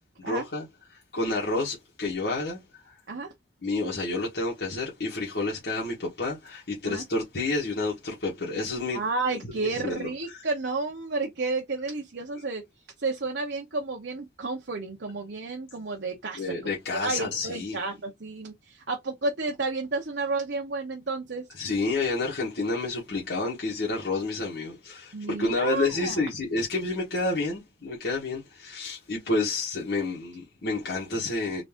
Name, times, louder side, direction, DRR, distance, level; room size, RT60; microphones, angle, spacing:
voice 1, 0.2-0.7 0.9-2.9 3.6-9.0 9.6-10.4 16.4-17.8 21.5-31.6, left 3 dB, 75° left, 1.3 m, -29 dB
voice 2, 8.9-12.6 13.0-16.6 16.9-21.4 25.1-26.3, right 3 dB, 85° right, 0.9 m, -31 dB
3.9 x 2.6 x 3.5 m
head